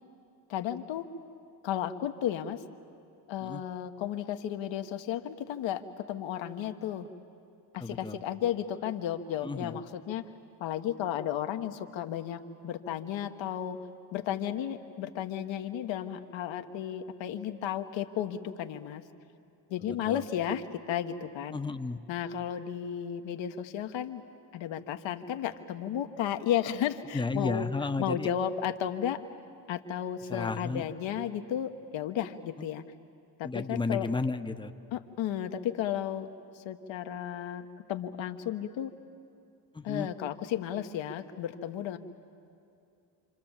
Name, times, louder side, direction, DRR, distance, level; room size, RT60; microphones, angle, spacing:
voice 1, 0.5-1.1 1.6-2.6 3.3-7.1 7.7-10.2 10.6-13.8 14.1-19.0 19.7-21.6 22.1-24.2 24.5-27.7 28.0-29.2 29.7-32.8 33.4-34.1 34.9-36.3 36.6-38.9 39.8-42.0, left 10 dB, 70° left, 7 dB, 1.5 m, -33 dB
voice 2, 7.8-8.2 9.4-9.8 19.8-20.2 21.5-22.0 27.1-28.3 30.3-30.9 32.6-32.7 33.4-34.7 39.7-40.1, left 3 dB, 10° left, 8 dB, 1.0 m, -33 dB
28.0 x 26.5 x 7.4 m, 2.6 s
supercardioid pair, 85°, 47 cm